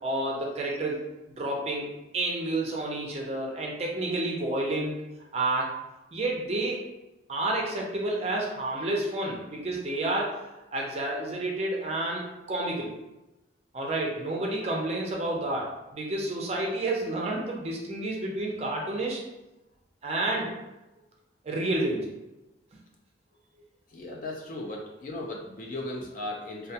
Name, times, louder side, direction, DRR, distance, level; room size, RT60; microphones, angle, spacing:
voice 1, 0.0-1.0 1.4-5.0 5.3-5.7 6.1-6.8 7.3-10.3 10.7-13.0 13.7-19.2 20.0-20.5 21.4-22.1, right 2 dB, 35° right, -2 dB, 0.4 m, -30 dB
voice 2, 23.9-26.7, left 1 dB, 45° left, -1 dB, 0.4 m, -36 dB
2.2 x 2.2 x 2.7 m, 0.99 s
head